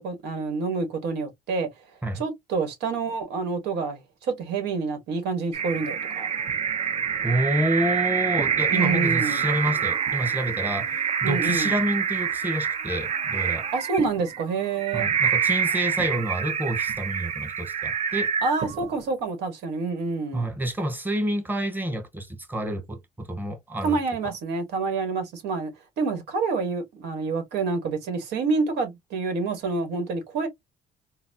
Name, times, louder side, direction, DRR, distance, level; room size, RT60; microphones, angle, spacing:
voice 1, 0.0-1.7 2.1-6.3 8.7-9.5 11.2-11.8 13.7-15.2 18.4-20.5 23.8-25.7 26.0-30.5, right 4 dB, 80° right, 1.3 m, -27 dB
sound 1, 5.5-19.0, right 7 dB, 40° right, 0.6 m, -26 dB
voice 2, 7.2-13.7 14.9-18.3 20.3-24.0, right 1 dB, 10° right, 0.9 m, -28 dB
3.9 x 2.0 x 2.5 m
cardioid pair, 110°, 17 cm